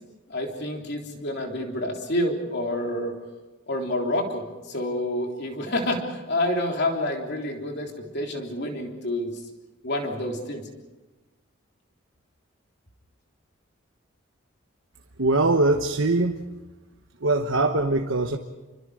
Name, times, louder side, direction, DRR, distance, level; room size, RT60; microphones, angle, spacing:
voice 1, 0.3-3.1 3.7-9.3 9.8-10.7, left 1 dB, 55° left, 2 dB, 3.5 m, -28 dB
voice 2, 15.2-16.4 17.2-18.4, right 2 dB, 75° right, 4 dB, 1.2 m, -22 dB
28.5 x 24.5 x 5.0 m, 1.2 s
head